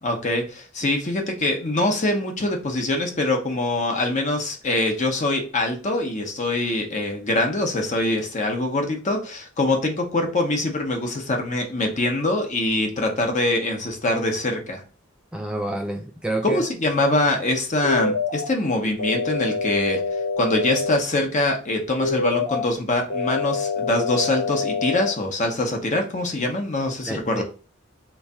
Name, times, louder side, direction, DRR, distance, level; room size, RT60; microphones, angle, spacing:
voice 1, 0.0-14.8 16.4-20.0 20.4-27.4, left 2 dB, 35° left, 3 dB, 0.9 m, -24 dB
voice 2, 15.3-16.6 27.1-27.4, right 1 dB, 5° right, 2 dB, 0.3 m, -28 dB
sound 1, 17.8-18.4 19.0-21.0 22.0-22.6 23.1-25.1, left 4 dB, 60° left, 1.2 m, -26 dB
3.6 x 3.2 x 4.2 m, 0.36 s
head